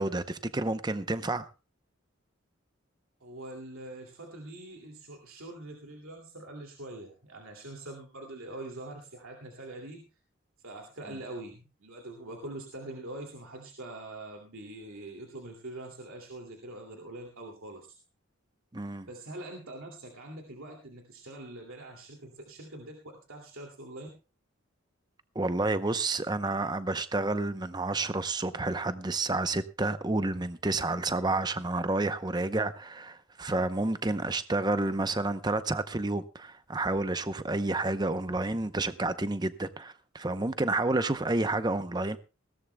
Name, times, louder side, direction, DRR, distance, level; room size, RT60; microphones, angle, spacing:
voice 1, 0.0-1.5 18.7-19.1 25.3-42.2, right 2 dB, 20° right, 0.7 m, -30 dB
voice 2, 3.2-10.1 10.6-17.9 19.1-24.1, right 2 dB, 85° right, 2.5 m, -44 dB
20.0 x 17.0 x 2.2 m
head